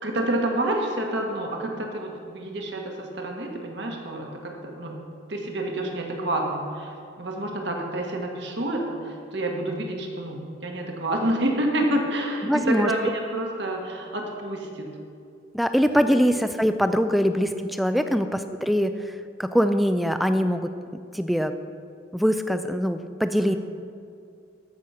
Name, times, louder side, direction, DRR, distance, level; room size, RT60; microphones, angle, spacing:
voice 1, 0.0-5.0 5.3-14.9 17.9-18.1 23.4-23.6, right 1 dB, 60° right, 1 dB, 1.7 m, -28 dB
voice 2, 12.4-12.9 15.5-19.1 19.4-21.5 22.1-23.6, equal, ahead, 9 dB, 0.4 m, -23 dB
14.0 x 6.5 x 5.7 m, 2.3 s
head